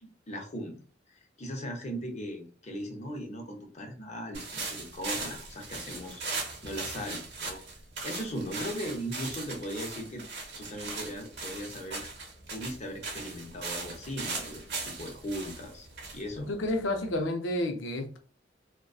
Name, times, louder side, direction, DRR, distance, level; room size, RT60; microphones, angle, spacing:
voice 1, 0.0-0.8 1.1-7.6 8.0-10.3 10.6-12.1 12.5-15.9 16.1-16.5, equal, 35° left, 2 dB, 0.6 m, -38 dB
sound 1, 4.3-17.1, right 3 dB, 60° right, 0.8 m, -39 dB
voice 2, 16.4-18.2, left 1 dB, 85° left, 5 dB, 0.5 m, -30 dB
2.5 x 2.1 x 2.3 m, 0.41 s
head